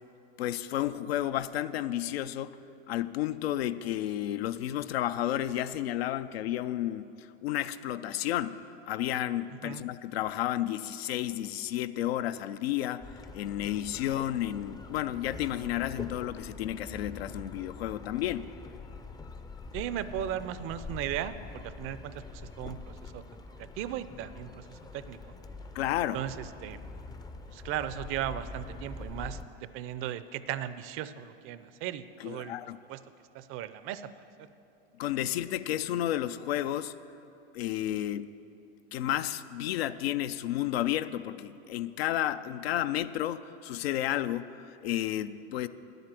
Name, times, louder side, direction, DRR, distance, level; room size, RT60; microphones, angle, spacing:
voice 1, 0.4-2.6 2.9-8.6 8.9-13.1 13.3-18.5 25.7-26.2 32.2-32.8 35.0-37.0 37.5-38.3 38.9-45.7, left 12 dB, 80° left, 13 dB, 0.5 m, -32 dB
voice 2, 9.5-9.8 19.7-21.4 21.6-25.2 26.1-26.8 27.5-29.4 29.7-32.5 32.9-33.0 33.3-34.1, right 11 dB, 45° right, 14 dB, 0.5 m, -37 dB
sound 1, 13.0-29.5, left 3 dB, 15° left, 0.4 m, -44 dB
10.5 x 8.0 x 7.5 m, 2.8 s
hypercardioid pair, 100°, 30 cm